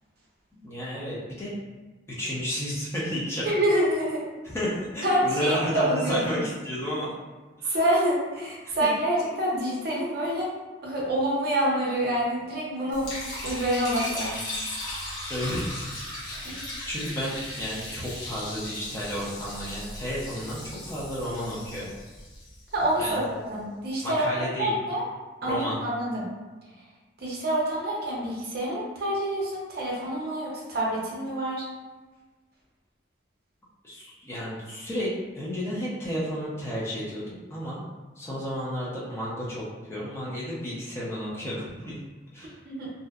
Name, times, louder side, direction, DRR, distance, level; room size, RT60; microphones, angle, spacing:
voice 1, 0.6-1.5 2.2-3.5 4.4-7.1 7.6-7.8 8.6-8.7 15.3-15.8 16.2-16.4 16.9-21.9 23.0-23.2 24.0-24.7 25.4-25.8 33.8-37.8 38.2-42.0 42.3-42.6, equal, 15° left, -8 dB, 0.5 m, -32 dB
voice 2, 3.4-4.3 5.0-6.2 7.7-10.6 10.8-13.1 13.4-14.4 16.3-16.6 22.7-23.2 23.5-24.3 24.6-25.0 25.4-26.3 27.2-31.7 42.6-42.9, right 1 dB, 55° right, -4 dB, 0.6 m, -27 dB
Liquid, 12.9-23.1, left 1 dB, 80° left, 1.0 m, -37 dB
2.6 x 2.1 x 2.3 m, 1.3 s
head